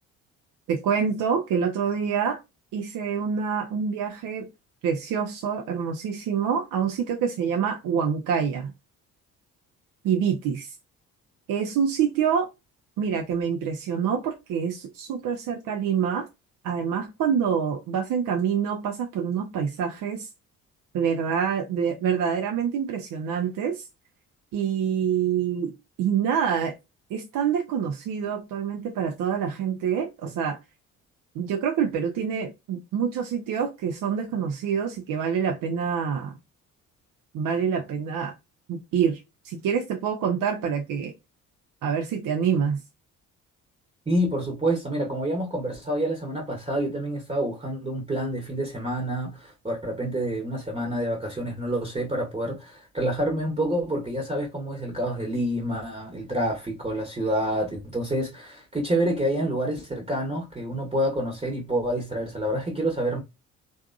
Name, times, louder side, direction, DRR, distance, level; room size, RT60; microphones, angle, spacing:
voice 1, 0.7-2.4 2.7-4.5 4.8-8.7 10.0-10.7 11.5-12.5 13.0-16.3 16.6-20.3 20.9-23.9 24.5-26.7 27.1-30.6 31.3-36.4 37.3-38.3 38.7-41.1 41.8-42.8, right 7 dB, 45° right, 0.6 m, -26 dB
voice 2, 44.1-63.2, right 1 dB, 15° right, 1.1 m, -28 dB
3.4 x 2.6 x 2.3 m
figure-of-eight pair, 45°, 43 cm